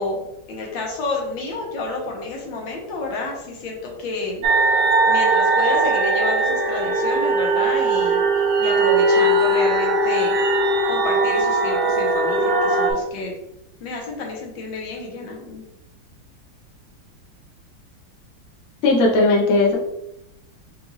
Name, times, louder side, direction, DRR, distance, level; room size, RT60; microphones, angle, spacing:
voice 1, 0.0-4.4 5.1-8.2 8.6-10.4 10.9-13.3 13.8-15.6, left 3 dB, 75° left, 0 dB, 1.6 m, -29 dB
sound 1, 4.4-12.9, right 2 dB, 70° right, 1.0 m, -19 dB
voice 2, 18.8-19.8, left 2 dB, 55° left, -1 dB, 1.0 m, -17 dB
5.2 x 2.4 x 3.1 m, 0.84 s
omnidirectional pair, 2.1 m